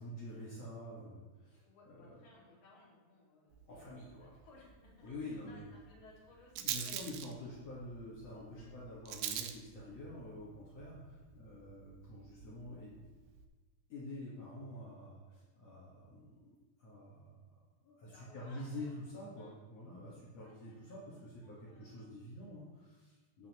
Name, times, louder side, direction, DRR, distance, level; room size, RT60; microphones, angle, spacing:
voice 1, 0.0-2.1 3.7-4.4 5.0-5.7 6.6-13.1 13.9-23.5, left 1 dB, 50° left, -6 dB, 2.4 m, -48 dB
voice 2, 1.6-7.6 8.5-8.7 18.1-19.6 20.4-22.1, left 3 dB, 70° left, -4 dB, 3.8 m, -63 dB
Rattle, 3.5-13.5, right 10 dB, 80° right, 1.9 m, -46 dB
11.5 x 9.0 x 3.0 m, 1.3 s
omnidirectional pair, 4.2 m